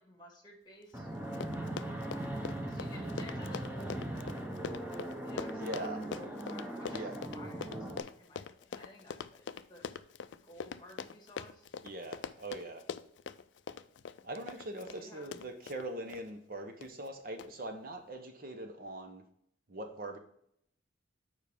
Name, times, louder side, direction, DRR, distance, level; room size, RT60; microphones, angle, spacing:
voice 1, 0.0-1.4 2.6-4.1 5.2-9.9 10.4-11.8 14.8-15.3, left 1 dB, 25° left, 0 dB, 1.6 m, -54 dB
Fixed-wing aircraft airplane, 0.9-8.0, right 1 dB, 10° right, 0.9 m, -39 dB
Run, 1.0-1.1 1.3-16.2 16.8-17.1 17.4-17.5, left 6 dB, 70° left, 0.4 m, -43 dB
voice 2, 5.5-6.0 6.9-7.1 11.8-12.8 14.2-19.2 19.7-20.2, right 1 dB, 50° right, 5 dB, 0.8 m, -42 dB
7.2 x 4.8 x 3.5 m, 0.70 s
head